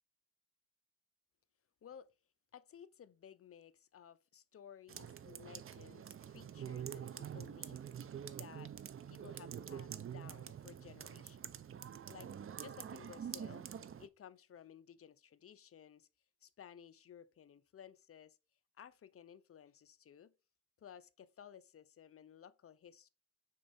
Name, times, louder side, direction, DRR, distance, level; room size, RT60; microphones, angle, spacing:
voice 1, 2.5-8.7 9.1-11.6 12.1-13.7 14.0-16.1 16.4-18.4 18.8-20.3 20.8-23.1, left 8 dB, 40° left, 0.6 m, -57 dB
sound 1, 4.9-14.1, right 8 dB, 40° right, 0.5 m, -46 dB
6.1 x 4.4 x 4.2 m
cardioid pair, 110°, 34 cm